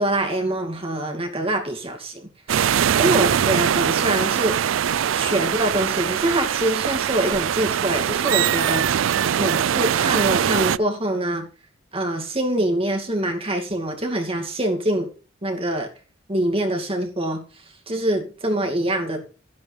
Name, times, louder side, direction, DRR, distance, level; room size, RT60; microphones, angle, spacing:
voice 1, 0.0-2.3 3.0-4.6 5.1-9.1 9.4-11.5 11.9-15.1 15.4-15.9 16.3-17.4 17.9-19.2, right 1 dB, 30° right, 2 dB, 2.5 m, -24 dB
sound 1, 2.5-10.8, right 9 dB, 90° right, 0.4 m, -22 dB
11.0 x 11.0 x 3.4 m, 0.35 s
head